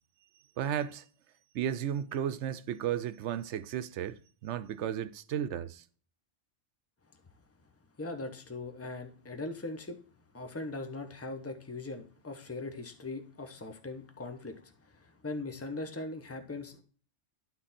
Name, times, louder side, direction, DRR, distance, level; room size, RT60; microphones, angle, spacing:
voice 1, 0.6-1.0 1.5-5.8, right 10 dB, 80° right, 0.9 m, -34 dB
voice 2, 8.0-10.0 10.3-14.5 15.2-16.8, left 2 dB, 15° left, 1.0 m, -40 dB
11.5 x 4.0 x 4.2 m
omnidirectional pair, 1.2 m